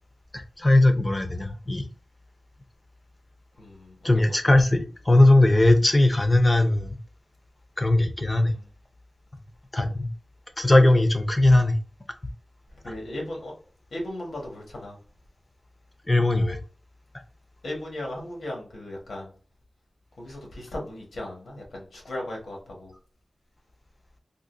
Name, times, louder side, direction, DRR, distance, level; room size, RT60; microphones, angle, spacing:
voice 1, 0.3-1.9 4.0-7.0 7.8-8.5 9.7-10.1 10.6-11.8 12.9-13.0 16.1-16.6, left 1 dB, 25° left, 0.5 m, -19 dB
voice 2, 3.6-4.2 8.3-8.5 12.8-13.5 13.9-14.9 17.6-19.3 20.2-22.9, left 1 dB, 85° left, 1.3 m, -36 dB
3.7 x 2.6 x 2.5 m
wide cardioid pair, 105°, 0 cm